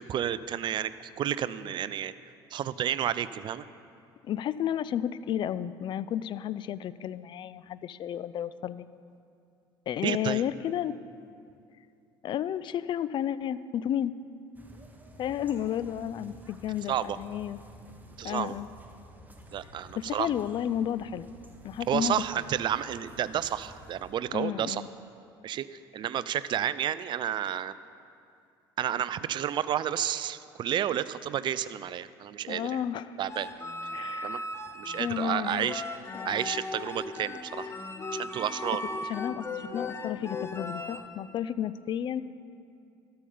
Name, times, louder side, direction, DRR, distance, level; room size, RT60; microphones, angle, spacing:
voice 1, 0.0-2.1 2.5-3.6 10.0-10.4 16.9-17.2 18.2-18.6 19.5-20.3 21.9-24.8 25.4-27.7 28.8-32.7 33.2-33.5 34.2-34.4 34.7-35.8 36.2-37.8 38.1-38.8, right 10 dB, 35° right, 16 dB, 0.4 m, -31 dB
voice 2, 4.2-8.9 9.9-11.0 12.2-14.1 15.2-17.6 18.2-18.7 19.9-21.3 21.6-22.2 24.3-24.9 32.5-33.2 33.9-34.5 35.0-35.7 39.0-42.2, left 10 dB, 40° left, 16 dB, 0.4 m, -32 dB
sound 1, 14.5-24.1, right 1 dB, 15° right, 1.1 m, -51 dB
sound 2, 33.2-41.1, left 2 dB, 20° left, 0.8 m, -37 dB
12.5 x 6.8 x 5.6 m, 2.5 s
figure-of-eight pair, 65°, 13 cm